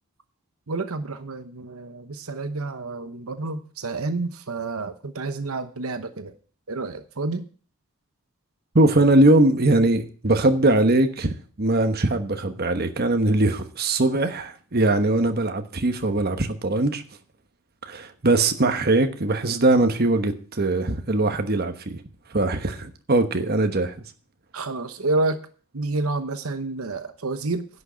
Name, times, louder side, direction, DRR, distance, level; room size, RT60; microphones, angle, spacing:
voice 1, 0.7-6.3 6.7-7.4 24.5-25.4 25.7-27.7, right 3 dB, 75° right, 0.9 m, -29 dB
voice 2, 8.7-17.0 17.8-22.0 22.3-24.0, right 2 dB, 45° right, 1.1 m, -21 dB
11.0 x 6.4 x 8.4 m
head